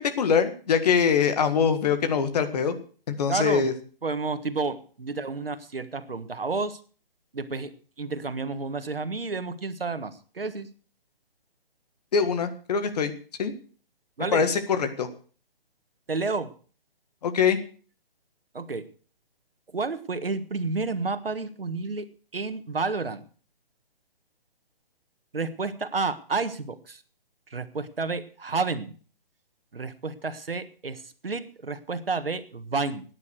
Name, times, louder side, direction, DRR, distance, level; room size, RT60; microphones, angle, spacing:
voice 1, 0.2-2.8 3.1-3.7 12.1-13.1 13.4-13.5 14.3-15.1 17.2-17.6, left 6 dB, 45° left, 9 dB, 1.9 m, -23 dB
voice 2, 3.3-3.7 4.0-6.8 7.3-10.7 14.2-14.4 16.1-16.5 18.5-18.8 19.7-22.0 22.3-23.2 25.3-27.0 27.5-28.9 29.7-33.0, right 4 dB, 80° right, 11 dB, 1.5 m, -30 dB
14.0 x 9.8 x 6.5 m, 0.42 s
figure-of-eight pair, 140°, 29 cm